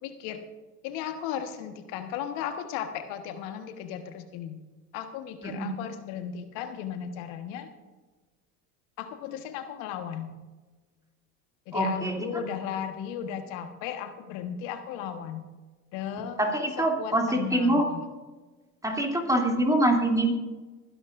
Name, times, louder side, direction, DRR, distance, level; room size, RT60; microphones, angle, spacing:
voice 1, 0.0-0.4 0.8-4.6 4.9-7.7 9.0-10.3 11.7-15.4 15.9-16.7 17.0-18.0, left 9 dB, 65° left, 7 dB, 1.5 m, -36 dB
voice 2, 5.4-5.8 11.7-12.4 16.4-17.9 18.8-20.3, right 1 dB, 5° right, 1 dB, 2.9 m, -25 dB
23.5 x 11.0 x 2.6 m, 1.3 s
hypercardioid pair, 80°, 47 cm